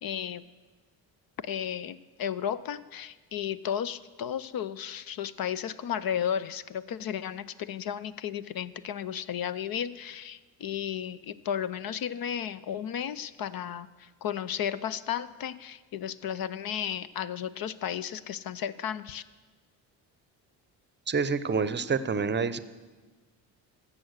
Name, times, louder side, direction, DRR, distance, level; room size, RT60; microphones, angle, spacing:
voice 1, 0.0-0.4 1.4-19.2, left 9 dB, 45° left, 15 dB, 0.6 m, -34 dB
voice 2, 21.1-22.6, right 5 dB, 20° right, 14 dB, 0.7 m, -27 dB
14.0 x 7.5 x 6.4 m, 1.3 s
hypercardioid pair, 55°, 50 cm